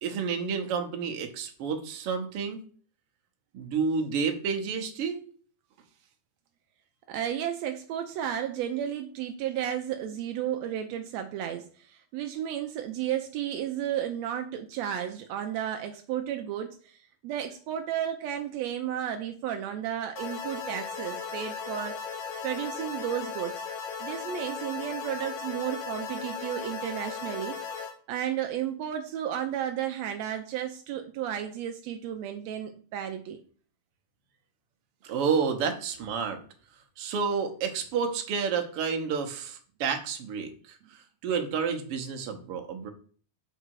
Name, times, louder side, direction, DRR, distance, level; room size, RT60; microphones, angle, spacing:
voice 1, 0.0-2.7 3.5-5.2 35.0-36.4 37.0-42.9, right 6 dB, 60° right, 4 dB, 1.6 m, -30 dB
voice 2, 7.1-21.9 22.4-23.5 24.0-27.5 28.1-33.4, right 10 dB, 85° right, 5 dB, 1.5 m, -33 dB
sound 1, 20.2-27.9, left 6 dB, 85° left, 2.7 m, -37 dB
6.6 x 4.9 x 4.6 m, 0.43 s
omnidirectional pair, 3.7 m